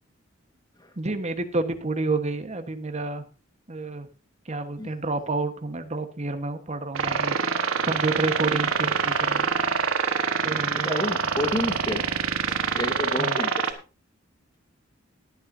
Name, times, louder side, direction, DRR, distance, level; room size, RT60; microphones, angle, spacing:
voice 1, 1.0-3.2 3.7-4.1 4.4-7.4 7.8-9.5 10.4-11.1 13.2-13.4, right 3 dB, 35° right, 8 dB, 1.3 m, -29 dB
sound 1, 6.9-13.7, right 5 dB, 80° right, 1.4 m, -25 dB
voice 2, 10.8-12.0 12.5-13.7, left 1 dB, 20° left, 7 dB, 1.5 m, -30 dB
21.0 x 9.0 x 2.7 m, 0.32 s
head